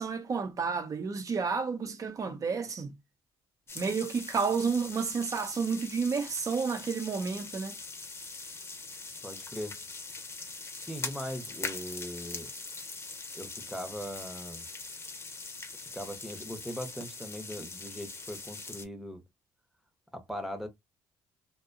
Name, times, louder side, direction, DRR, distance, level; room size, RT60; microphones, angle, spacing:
voice 1, 0.0-2.9 3.7-7.8, right 5 dB, 40° right, 0.7 m, -31 dB
sound 1, 3.7-18.9, left 3 dB, 30° left, 0.8 m, -42 dB
voice 2, 9.2-9.8 10.8-12.5 13.4-14.7 15.9-19.2 20.1-20.7, equal, ahead, 0.8 m, -40 dB
2.6 x 2.2 x 2.5 m
supercardioid pair, 75°, 8 cm